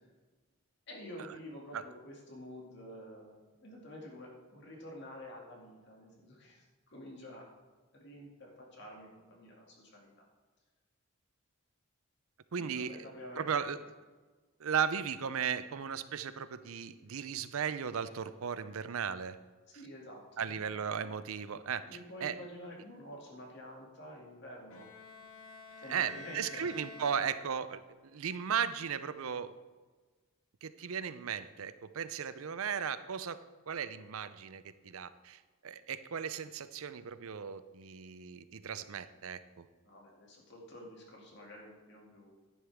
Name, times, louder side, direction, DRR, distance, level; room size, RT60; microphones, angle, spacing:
voice 1, 0.9-7.5 7.9-10.2 12.6-13.6 19.7-20.6 21.9-25.2 25.8-26.8 39.8-42.3, left 1 dB, 50° left, -1 dB, 2.3 m, -49 dB
voice 2, 12.5-13.0 13.4-13.8 14.6-19.4 20.4-21.8 22.2-22.3 25.9-29.5 30.6-33.4 33.7-39.7, right 7 dB, 75° right, 13 dB, 0.5 m, -36 dB
Bowed string instrument, 24.7-27.9, left 3 dB, 80° left, 0.8 m, -49 dB
11.0 x 10.0 x 3.5 m, 1.3 s
head